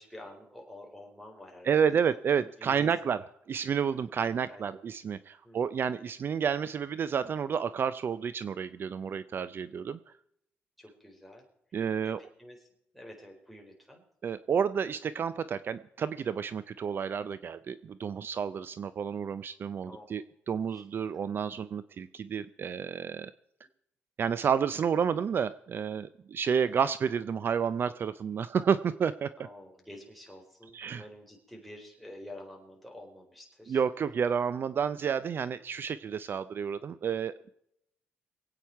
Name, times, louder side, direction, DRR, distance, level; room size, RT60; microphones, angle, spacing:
voice 1, 0.0-2.0 2.4-3.1 4.2-4.8 5.4-5.7 10.8-11.4 11.7-12.7 12.9-14.0 19.8-20.1 29.4-33.8, left 1 dB, ahead, 0 dB, 4.2 m, -49 dB
voice 2, 1.6-3.2 3.5-10.0 11.7-12.2 14.2-23.3 24.2-29.3 30.7-31.0 33.7-37.3, right 7 dB, 50° right, 15 dB, 0.5 m, -30 dB
23.0 x 8.9 x 4.6 m, 0.76 s
cardioid pair, 100°, 5 cm